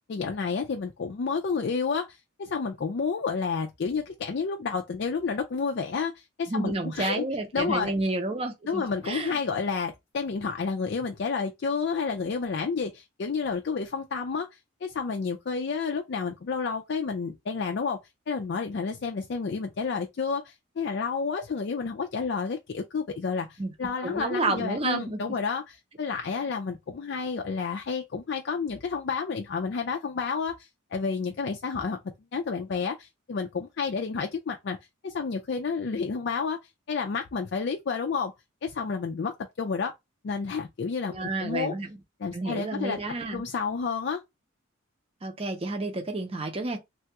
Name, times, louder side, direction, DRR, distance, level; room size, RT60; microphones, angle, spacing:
voice 1, 0.1-7.2 7.5-7.9 8.7-18.0 18.3-32.0 32.3-34.8 35.0-36.6 36.9-38.3 38.6-39.9 40.2-41.7 42.2-43.0 43.3-44.2, left 5 dB, 55° left, 0.4 m, -30 dB
voice 2, 6.5-9.4 23.6-23.7 24.0-25.4 41.1-42.0 42.3-43.4 45.2-46.8, right 2 dB, 30° right, 0.6 m, -30 dB
3.3 x 2.3 x 2.8 m
head